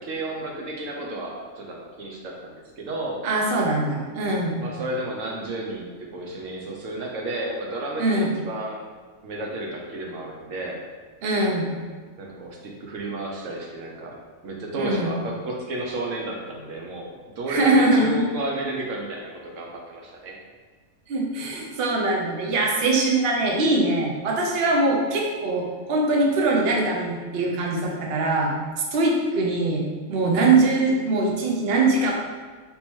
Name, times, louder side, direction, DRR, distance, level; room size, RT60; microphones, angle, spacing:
voice 1, 0.0-3.2 4.6-8.8 9.2-10.8 12.2-14.2 14.4-20.3, right 1 dB, 80° right, -1 dB, 1.1 m, -32 dB
voice 2, 3.2-4.6 8.0-8.3 11.2-11.8 14.8-15.2 17.5-18.2 21.1-32.1, right 2 dB, 55° right, -1 dB, 0.9 m, -22 dB
3.5 x 2.8 x 4.4 m, 1.4 s
omnidirectional pair, 1.3 m